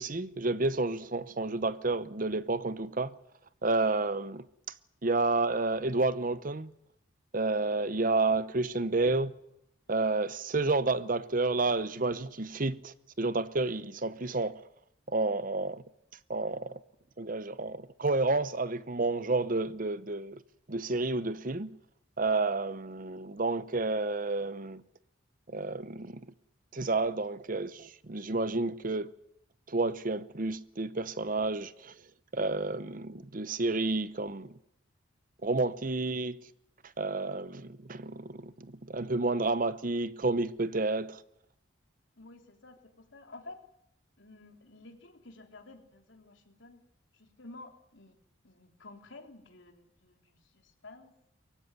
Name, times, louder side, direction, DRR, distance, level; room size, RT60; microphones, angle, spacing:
voice 1, 0.0-3.2 3.6-4.4 5.0-6.7 7.3-9.3 9.9-14.6 15.1-15.8 16.3-16.8 17.2-20.4 20.7-21.8 22.2-24.8 25.5-26.2 26.7-29.1 29.7-31.9 32.3-34.5 35.4-36.4 37.0-41.2, right 3 dB, 40° right, 0.8 m, -30 dB
voice 2, 42.2-43.6 44.2-46.8 47.1-48.2 48.4-51.1, left 2 dB, 65° left, 3.6 m, -51 dB
23.5 x 15.5 x 9.7 m
head